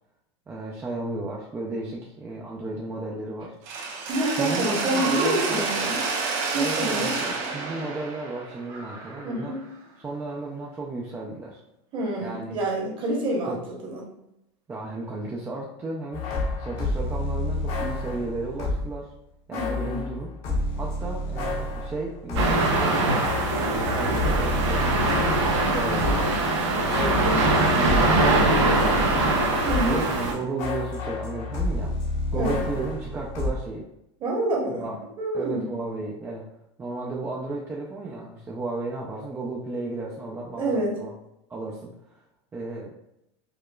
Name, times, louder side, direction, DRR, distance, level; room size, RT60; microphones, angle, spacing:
voice 1, 0.5-3.5 4.3-5.7 6.5-9.6 10.0-11.6 12.2-12.6 13.5-13.6 14.7-16.2 16.6-19.1 19.5-20.3 20.8-23.0 23.7-25.3 25.7-26.3 26.8-29.4 29.8-31.9 32.3-33.8 34.7-35.0 35.3-36.5 36.8-41.1 41.5-42.2 42.5-42.9, right 2 dB, 15° right, -3 dB, 0.4 m, -34 dB
Mechanisms, 3.7-9.5, right 4 dB, 60° right, 0.9 m, -29 dB
voice 2, 4.1-6.0 6.5-7.2 9.2-9.6 11.9-14.1 19.5-20.0 26.9-27.4 29.6-30.0 32.3-32.6 34.2-34.9 35.2-35.7 40.5-40.9, right 1 dB, 35° right, -1 dB, 1.0 m, -27 dB
sound 1, 16.1-19.0 19.5-22.7 22.9-30.0 30.3-33.5, left 2 dB, 50° left, 0.9 m, -30 dB
sound 2, 22.4-30.3, right 2 dB, 85° right, 0.8 m, -22 dB
4.9 x 2.2 x 2.3 m, 0.84 s
supercardioid pair, 135°, 15 cm